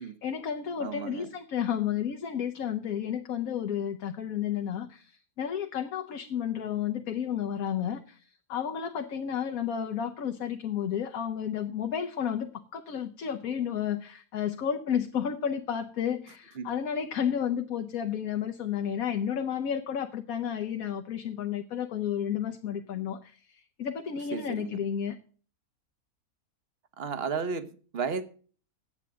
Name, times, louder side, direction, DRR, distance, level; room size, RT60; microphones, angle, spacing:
voice 1, 0.0-25.2, left 8 dB, 70° left, 1.3 m, -32 dB
voice 2, 0.8-1.3 16.6-16.7 24.3-24.8 27.0-28.2, right 5 dB, 45° right, 1.1 m, -33 dB
9.6 x 8.1 x 7.4 m
omnidirectional pair, 1.6 m